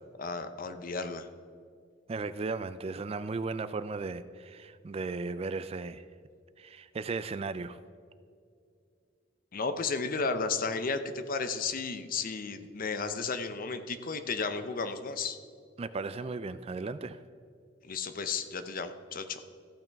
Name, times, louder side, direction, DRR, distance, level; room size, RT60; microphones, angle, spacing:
voice 1, 0.2-1.3 9.5-15.4 17.8-19.4, left 4 dB, 45° left, 9 dB, 0.7 m, -33 dB
voice 2, 2.1-6.0 6.6-7.8 15.8-17.2, right 4 dB, 30° right, 13 dB, 0.3 m, -36 dB
14.5 x 8.8 x 3.5 m, 2.3 s
head